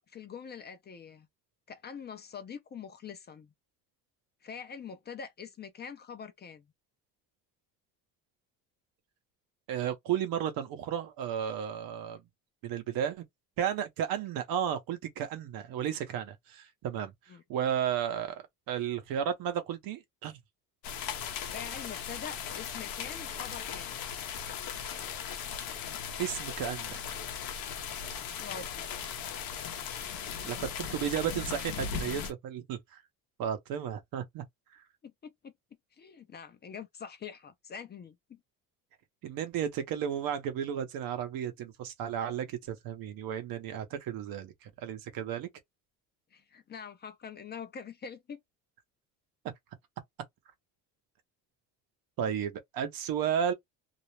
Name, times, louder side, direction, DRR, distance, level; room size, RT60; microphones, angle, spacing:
voice 1, 0.1-1.3 1.7-3.5 4.4-6.7 17.3-17.4 21.5-24.0 28.4-28.9 35.0-35.5 36.0-38.4 46.3-48.4, left 6 dB, 30° left, 0.4 m, -44 dB
voice 2, 9.7-12.2 12.6-13.2 13.6-17.1 17.5-20.4 26.2-27.0 30.4-32.8 33.4-34.4 39.2-45.5 52.2-53.5, right 9 dB, 75° right, 0.7 m, -33 dB
sound 1, 20.8-32.3, left 7 dB, 70° left, 0.7 m, -38 dB
2.4 x 2.0 x 3.0 m
cardioid pair, 115°, 36 cm